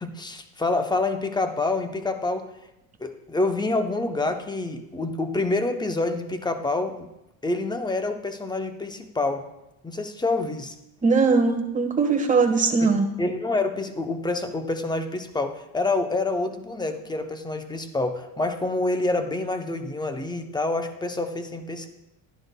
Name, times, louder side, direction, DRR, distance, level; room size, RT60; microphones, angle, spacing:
voice 1, 0.0-2.5 3.0-7.1 7.4-9.5 9.8-10.7 12.8-12.9 13.2-21.9, left 2 dB, 10° left, 7 dB, 0.7 m, -27 dB
voice 2, 11.0-13.0, right 4 dB, 15° right, 4 dB, 1.2 m, -20 dB
12.0 x 10.5 x 2.2 m, 0.89 s
cardioid pair, 115°, 46 cm